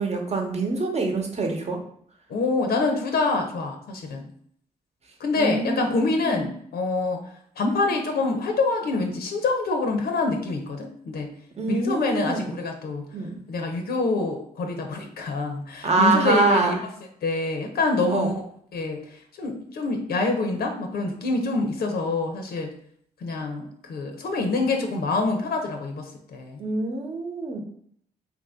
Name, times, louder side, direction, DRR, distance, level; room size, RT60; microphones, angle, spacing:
voice 1, 0.0-1.8 5.4-5.9 6.2-6.4 11.6-12.5 13.1-13.4 15.8-16.7 18.1-18.3 26.6-27.6, right 3 dB, 40° right, 3 dB, 0.9 m, -24 dB
voice 2, 2.3-4.2 5.2-7.2 7.6-11.3 11.7-13.1 13.5-16.8 17.2-18.3 18.7-22.7 23.2-26.6, left 3 dB, 70° left, 4 dB, 0.6 m, -26 dB
2.9 x 2.6 x 3.5 m, 0.65 s
supercardioid pair, 55°, 17 cm